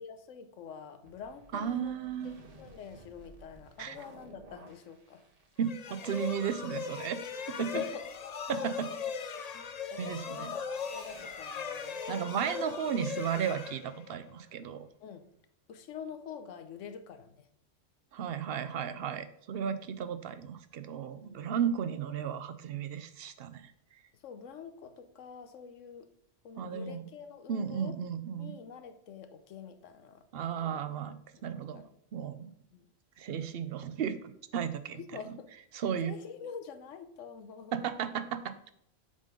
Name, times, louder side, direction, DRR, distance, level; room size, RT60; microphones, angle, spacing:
voice 1, 0.0-1.9 2.2-2.3 2.6-5.2 7.6-8.1 8.8-10.6 10.9-12.0 15.0-15.3 15.7-17.5 21.2-21.6 24.1-26.1 26.4-28.0 28.4-30.3 30.6-30.8 31.7-31.9 32.7-32.9 34.9-35.5 36.0-37.9, left 7 dB, 85° left, 9 dB, 1.1 m, -46 dB
sound 1, 1.0-13.0, right 2 dB, 35° right, 0.9 m, -56 dB
voice 2, 1.5-2.3 3.8-4.0 5.6-7.2 7.5-7.7 8.5-8.9 10.0-10.5 12.1-14.9 18.1-24.0 26.6-27.0 27.5-28.6 30.3-31.2 31.4-31.8 32.1-32.5 33.2-35.0 35.7-36.1 37.7-38.7, right 8 dB, 60° right, 12 dB, 0.7 m, -34 dB
sound 2, 5.6-14.4, left 6 dB, 55° left, 0.4 m, -39 dB
7.3 x 3.8 x 5.1 m, 0.71 s
omnidirectional pair, 1.3 m